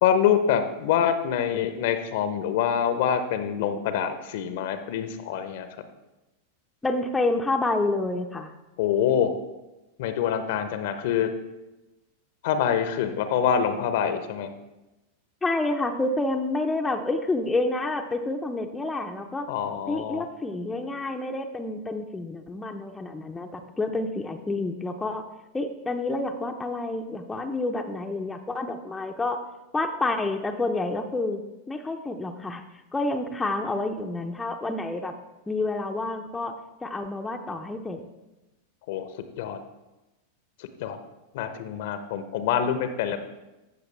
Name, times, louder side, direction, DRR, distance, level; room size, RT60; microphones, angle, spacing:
voice 1, 0.0-5.9 8.8-9.3 10.0-11.3 12.4-14.5 19.5-20.3 38.9-39.6 40.6-41.0 41.3-43.2, left 8 dB, 50° left, 9 dB, 0.8 m, -25 dB
voice 2, 6.8-8.5 15.4-19.5 19.9-25.2 25.5-29.5 29.7-31.4 31.7-32.6 32.9-35.1 35.5-38.0, left 2 dB, 10° left, 4 dB, 0.7 m, -28 dB
15.5 x 6.5 x 3.3 m, 1.0 s
figure-of-eight pair, 90°, 0 cm